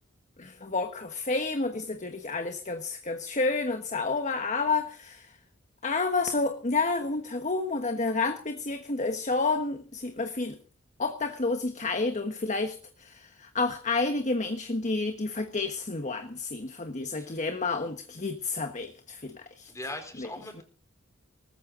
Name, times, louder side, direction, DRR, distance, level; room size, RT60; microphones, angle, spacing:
voice 1, 0.4-5.3 5.8-10.6 11.0-19.7 20.2-20.3, left 3 dB, 35° left, 7 dB, 1.3 m, -30 dB
voice 2, 17.1-17.4 19.7-20.6, left 1 dB, 15° left, 6 dB, 3.9 m, -40 dB
19.5 x 14.5 x 3.8 m, 0.39 s
head